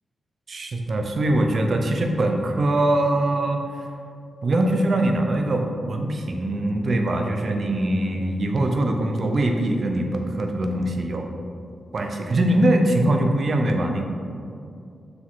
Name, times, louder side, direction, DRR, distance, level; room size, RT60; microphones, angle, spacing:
voice 1, 0.5-3.7 4.4-11.3 11.9-14.0, right 1 dB, 50° right, 3 dB, 0.7 m, -22 dB
6.3 x 5.0 x 3.7 m, 2.4 s
wide cardioid pair, 135°, 0 cm